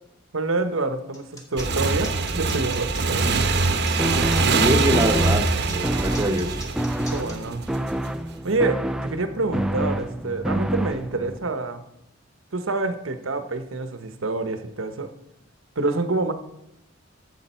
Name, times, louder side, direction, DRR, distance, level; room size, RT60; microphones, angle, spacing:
voice 1, 0.3-3.4 7.1-7.6 8.4-11.8 12.5-15.1 15.8-16.3, right 3 dB, 80° right, 8 dB, 1.0 m, -27 dB
sound 1, 1.1-7.3, left 1 dB, 15° left, 1.8 m, -41 dB
Motorcycle / Engine, 1.6-7.9, right 3 dB, 55° right, 0.9 m, -23 dB
sound 2, 4.0-11.4, right 1 dB, 5° right, 0.4 m, -28 dB
voice 2, 4.4-6.6, equal, 20° right, 5 dB, 1.1 m, -24 dB
13.5 x 7.7 x 4.4 m, 0.84 s
head